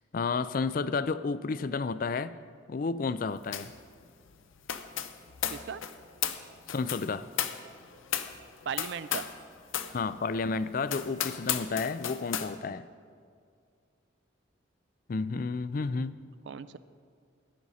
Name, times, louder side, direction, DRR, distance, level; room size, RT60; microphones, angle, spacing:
voice 1, 0.1-2.4 2.7-3.7 6.7-7.3 9.9-12.9 15.1-16.1, left 4 dB, 45° left, 15 dB, 0.4 m, -31 dB
sound 1, 3.5-9.4 9.7-10.0 10.4-10.5 10.9-12.5, left 9 dB, 75° left, 0.7 m, -35 dB
voice 2, 5.5-5.8 8.7-9.3 16.5-16.8, right 6 dB, 60° right, 14 dB, 0.3 m, -37 dB
15.5 x 10.5 x 4.2 m, 2.2 s
head